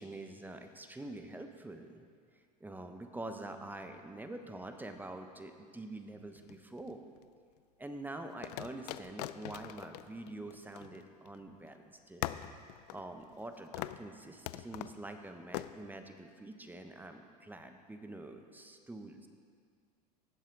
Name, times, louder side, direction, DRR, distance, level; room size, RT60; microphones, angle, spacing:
voice 1, 0.0-2.0 2.6-7.0 7.8-12.3 12.9-19.3, right 2 dB, 10° right, 6 dB, 1.0 m, -46 dB
sound 1, 6.4-7.2 8.4-11.4 11.7-11.8 12.2-13.5 13.7-14.1 14.5-15.0 15.5-15.7, left 14 dB, 70° left, 0.5 m, -42 dB
18.0 x 7.4 x 4.0 m, 2.1 s
hypercardioid pair, 90°, 21 cm